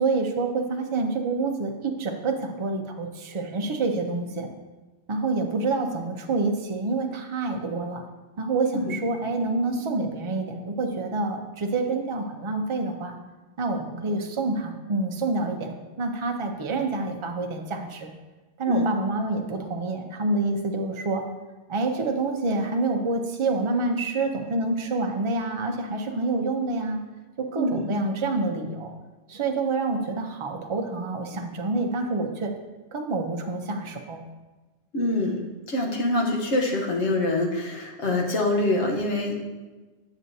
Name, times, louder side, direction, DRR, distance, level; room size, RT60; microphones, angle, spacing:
voice 1, 0.0-4.5 5.1-8.0 8.4-13.1 13.6-15.7 16.0-18.1 18.6-21.2 21.7-27.0 27.4-28.9 29.3-32.5 32.9-34.3, right 3 dB, 35° right, 3 dB, 0.6 m, -27 dB
voice 2, 34.9-39.4, left 2 dB, 80° left, 0 dB, 1.4 m, -25 dB
8.9 x 6.1 x 2.7 m, 1.2 s
omnidirectional pair, 1.2 m